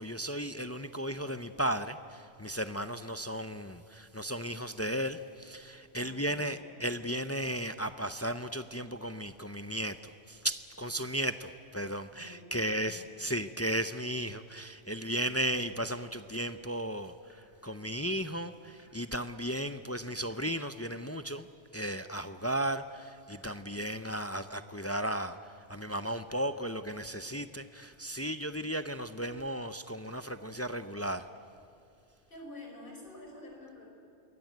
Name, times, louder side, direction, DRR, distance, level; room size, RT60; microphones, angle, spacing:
voice 1, 0.0-21.5 21.7-25.4 25.7-31.3, right 1 dB, 15° left, 10 dB, 0.5 m, -35 dB
voice 2, 5.9-6.8 12.1-13.1 32.3-33.9, left 1 dB, 50° left, 0 dB, 5.8 m, -49 dB
sound 1, 17.3-17.4 18.8-18.9 20.3-20.4 21.8-21.9 23.3-23.4 24.8-24.9 26.3-26.4 27.8-27.9 29.3-29.4, left 1 dB, 85° left, 8.1 m, -63 dB
27.0 x 21.5 x 9.3 m, 2.5 s
omnidirectional pair, 1.2 m